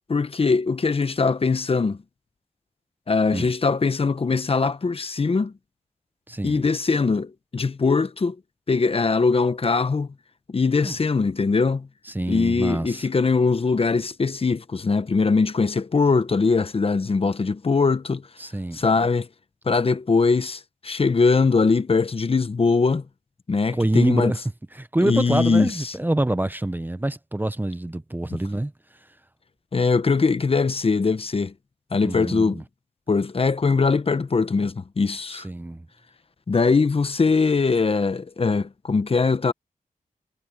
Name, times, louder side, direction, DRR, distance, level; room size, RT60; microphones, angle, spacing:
voice 1, 0.1-2.0 3.1-5.5 6.4-8.4 8.7-10.1 10.5-11.9 12.3-18.2 18.7-19.3 19.7-23.0 23.5-24.3 25.0-25.9 28.3-28.4 29.7-31.5 31.9-32.6 33.1-35.5 36.5-39.5, left 4 dB, 40° left, 1.0 m, -21 dB
voice 2, 6.3-6.6 10.8-11.0 12.1-13.1 18.4-18.8 23.7-24.4 24.8-28.7 32.0-32.6 35.3-35.8, right 1 dB, 15° right, 0.9 m, -26 dB
cardioid pair, 70°, 15 cm